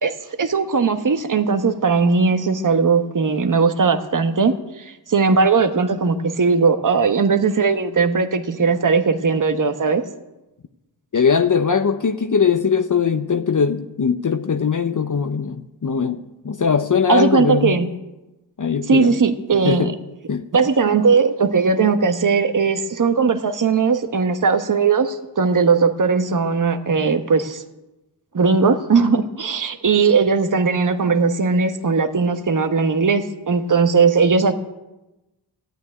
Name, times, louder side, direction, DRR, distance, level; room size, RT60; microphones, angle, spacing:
voice 1, 0.0-10.0 17.1-17.9 18.9-19.9 20.5-27.6 28.3-34.5, right 5 dB, 45° right, 8 dB, 1.2 m, -18 dB
voice 2, 11.1-17.8 18.6-19.2 19.6-19.9 20.3-20.5, left 6 dB, 45° left, 8 dB, 0.8 m, -20 dB
13.5 x 9.1 x 9.7 m, 1.0 s
cardioid pair, 60°, 43 cm